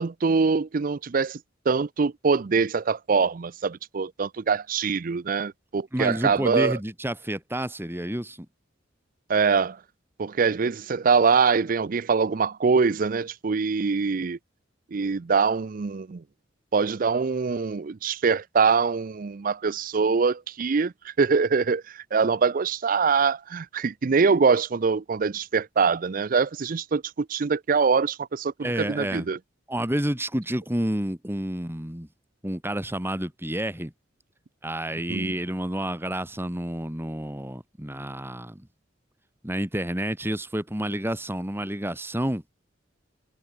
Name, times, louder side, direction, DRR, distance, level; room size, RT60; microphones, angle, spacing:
voice 1, 0.0-1.4 1.7-6.8 9.3-9.8 10.2-14.4 14.9-16.2 16.7-29.4 35.1-35.3, right 5 dB, 45° right, 0.5 m, -24 dB
voice 2, 5.9-8.5 28.6-29.3 29.7-32.1 32.4-33.9 34.6-38.7 39.4-42.4, right 1 dB, 10° right, 3.1 m, -29 dB
head